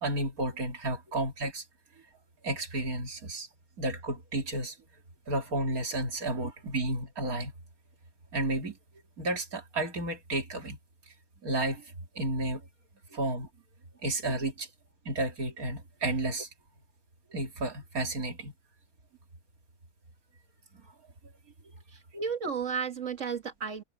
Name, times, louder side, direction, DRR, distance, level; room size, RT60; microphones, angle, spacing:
voice 1, 0.0-1.6 2.4-3.5 3.8-4.8 5.3-7.5 8.3-8.8 9.2-10.8 11.4-12.6 13.1-13.5 14.0-14.7 15.0-16.5 17.3-18.5, right 2 dB, 85° right, 3.1 m, -32 dB
voice 2, 21.9-23.8, right 6 dB, 60° right, 2.1 m, -33 dB
omnidirectional pair, 1.5 m